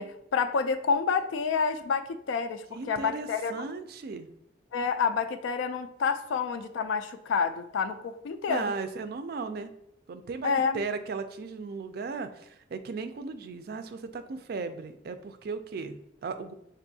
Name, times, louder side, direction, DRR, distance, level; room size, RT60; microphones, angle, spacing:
voice 1, 0.0-3.5 4.7-8.7 10.4-10.8, left 5 dB, 85° left, 9 dB, 0.3 m, -28 dB
voice 2, 2.7-4.3 8.5-9.7 10.1-16.5, right 4 dB, 55° right, 9 dB, 0.3 m, -36 dB
6.1 x 2.5 x 2.7 m, 0.76 s
head